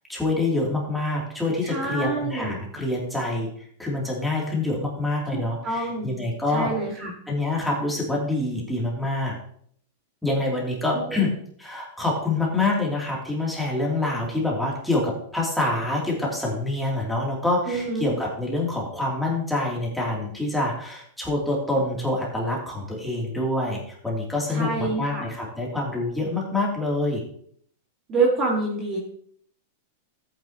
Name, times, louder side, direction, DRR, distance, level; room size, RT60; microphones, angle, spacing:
voice 1, 0.1-3.5 3.8-6.7 7.3-9.4 10.2-11.3 11.6-27.2, left 2 dB, ahead, -4 dB, 2.7 m, -26 dB
voice 2, 1.6-2.6 5.3-6.2 6.5-7.1 10.9-11.3 17.7-18.2 24.5-25.2 28.1-29.0, right 3 dB, 25° right, -2 dB, 1.8 m, -27 dB
13.5 x 9.0 x 2.9 m, 0.63 s
supercardioid pair, 160°, 0 cm